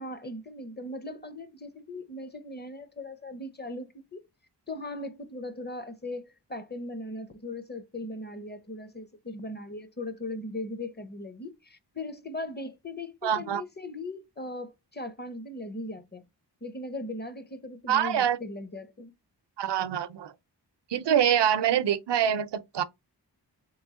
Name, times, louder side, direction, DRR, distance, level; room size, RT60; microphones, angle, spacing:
voice 1, 0.0-4.2 4.7-16.2 16.6-19.1, left 1 dB, 25° left, 0.7 m, -39 dB
voice 2, 13.2-13.6 17.9-18.4 19.6-20.3 20.9-22.8, right 9 dB, 75° right, 0.6 m, -25 dB
3.4 x 3.1 x 3.6 m
wide cardioid pair, 65°, 42 cm